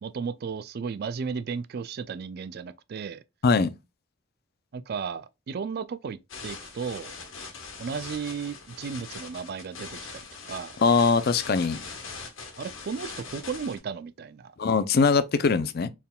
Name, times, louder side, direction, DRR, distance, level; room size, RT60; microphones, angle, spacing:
voice 1, 0.0-3.2 4.7-7.1 7.8-10.7 12.6-14.5, right 6 dB, 50° right, 0.3 m, -34 dB
voice 2, 3.4-3.7 10.8-11.8 14.6-15.9, left 4 dB, 45° left, 0.4 m, -22 dB
sound 1, 6.3-13.8, left 4 dB, 65° left, 1.2 m, -41 dB
4.4 x 3.6 x 2.2 m
head